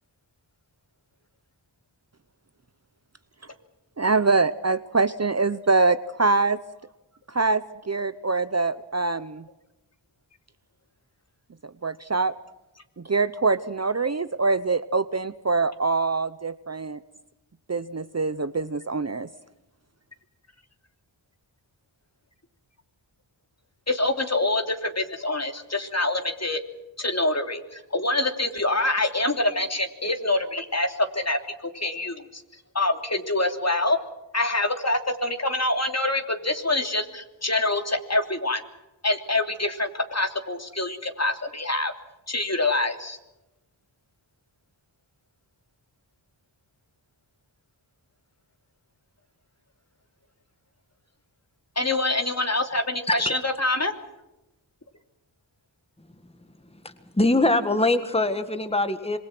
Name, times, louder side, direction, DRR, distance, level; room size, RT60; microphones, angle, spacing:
voice 1, 4.0-6.6 7.3-9.4 11.8-12.3 13.0-17.0 17.7-19.3, right 3 dB, 35° right, 13 dB, 0.9 m, -24 dB
voice 2, 23.9-26.6 27.0-32.4 32.7-34.0 34.3-38.6 39.0-41.9 42.3-43.2 51.8-54.0, left 2 dB, 35° left, 5 dB, 3.1 m, -25 dB
voice 3, 57.2-59.2, left 2 dB, 15° left, 9 dB, 1.7 m, -22 dB
26.5 x 22.5 x 6.1 m, 0.95 s
wide cardioid pair, 50°, 46 cm